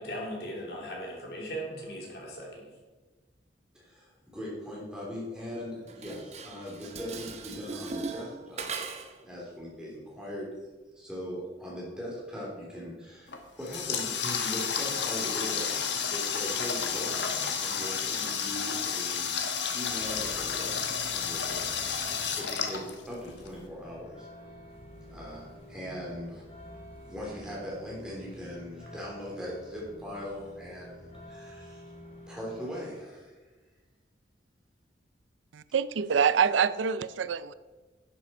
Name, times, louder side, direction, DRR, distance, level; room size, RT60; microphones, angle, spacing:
voice 1, 0.0-2.7, equal, 60° left, -2 dB, 2.9 m, -38 dB
voice 2, 3.7-8.7 9.2-10.5 10.9-15.8 16.1-20.8 21.1-21.8 22.3-22.8 23.1-24.3 25.1-26.4 27.1-31.8 32.3-33.4, equal, 5° right, -6 dB, 3.3 m, -40 dB
Dishes pots and pans, 5.9-9.2, right 4 dB, 35° right, 0.8 m, -39 dB
Water tap faucet, 13.3-23.5, left 6 dB, 75° left, 1.2 m, -31 dB
sound 1, 19.9-32.8, left 1 dB, 30° left, 2.3 m, -49 dB
voice 3, 35.5-37.5, right 7 dB, 90° right, 15 dB, 0.4 m, -26 dB
11.0 x 7.7 x 4.4 m, 1.3 s
head